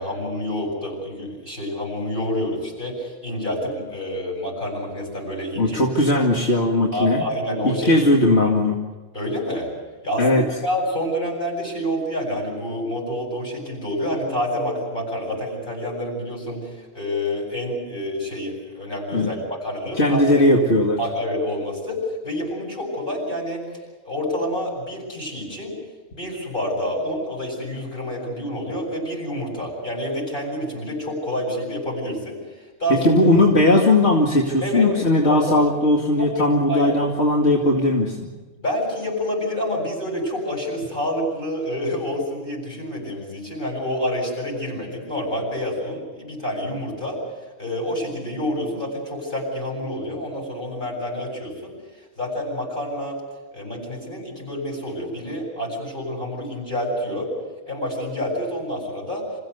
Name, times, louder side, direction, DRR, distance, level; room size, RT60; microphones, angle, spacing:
voice 1, 0.0-5.8 6.1-6.2 6.9-8.0 8.4-8.5 9.1-9.7 10.0-20.5 21.0-23.6 24.0-25.7 26.1-32.4 32.8-33.1 34.6-34.9 35.2-35.7 36.2-36.9 38.6-47.2 47.6-51.7 52.2-53.2 53.5-57.3 57.7-59.3, equal, 50° left, -1 dB, 8.2 m, -28 dB
voice 2, 5.6-7.2 7.6-8.8 10.2-10.4 19.1-19.3 20.0-21.0 32.9-38.3, left 1 dB, 85° left, -1 dB, 2.6 m, -18 dB
27.0 x 16.5 x 8.2 m, 1.3 s
omnidirectional pair, 1.1 m